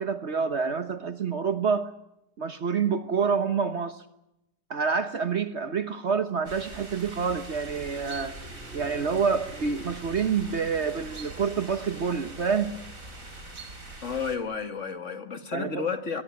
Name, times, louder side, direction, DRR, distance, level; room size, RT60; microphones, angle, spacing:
voice 1, 0.0-1.9 2.4-4.0 4.7-8.3 8.7-12.7 15.5-15.9, right 6 dB, 55° right, 10 dB, 1.3 m, -27 dB
sound 1, 6.5-14.4, right 2 dB, 75° right, 4.9 m, -43 dB
sound 2, 7.7-14.5, right 2 dB, 35° right, 6.0 m, -49 dB
voice 2, 14.0-16.2, left 5 dB, 60° left, 8 dB, 2.4 m, -32 dB
22.0 x 22.0 x 9.5 m, 0.87 s
omnidirectional pair, 1.4 m